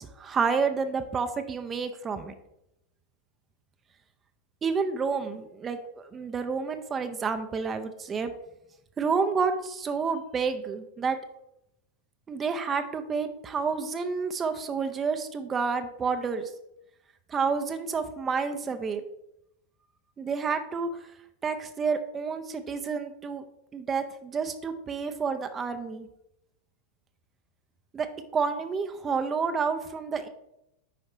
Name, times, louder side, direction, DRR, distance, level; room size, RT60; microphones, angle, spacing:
voice 1, 0.0-2.3 4.6-8.3 9.0-11.2 12.3-16.5 17.3-19.0 20.2-21.1 21.4-23.4 23.7-26.1 27.9-28.1 28.3-30.3, right 5 dB, 20° right, 7 dB, 0.5 m, -29 dB
5.2 x 4.9 x 4.8 m, 0.83 s
figure-of-eight pair, 90°, 0 cm